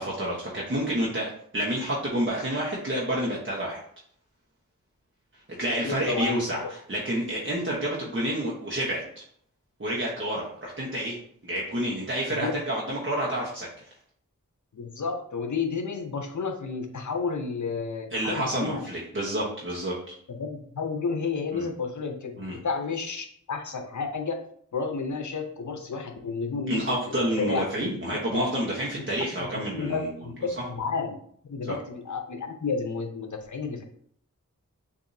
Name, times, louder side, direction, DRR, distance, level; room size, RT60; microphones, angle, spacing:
voice 1, 0.0-3.8 5.6-9.2 9.8-13.7 18.1-20.1 21.5-21.6 22.4-22.6 26.7-30.1, right 1 dB, 40° right, -5 dB, 1.0 m, -29 dB
voice 2, 5.8-6.7 12.4-12.6 14.7-18.9 20.3-24.4 24.7-26.9 27.4-28.4 29.2-29.5 29.7-31.2 31.4-33.8, left 4 dB, 65° left, 5 dB, 0.7 m, -31 dB
6.8 x 2.7 x 2.7 m, 0.62 s
wide cardioid pair, 55°, 32 cm